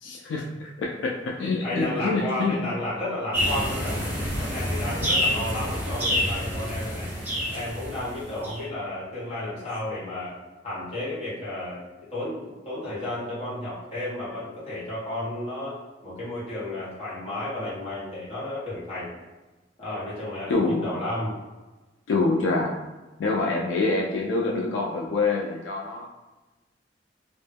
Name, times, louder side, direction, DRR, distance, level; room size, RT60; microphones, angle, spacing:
voice 1, 0.0-2.6 5.0-5.1 20.5-20.9 22.1-22.8 23.2-26.1, left 3 dB, 85° left, -1 dB, 0.3 m, -26 dB
voice 2, 1.4-4.0 4.4-7.1 7.5-10.4 10.6-11.8 12.1-19.1 19.8-21.3, left 1 dB, 35° left, -9 dB, 1.0 m, -32 dB
sound 1, 3.3-8.6, equal, 10° right, 0.7 m, -27 dB
2.2 x 2.0 x 3.2 m, 1.2 s
head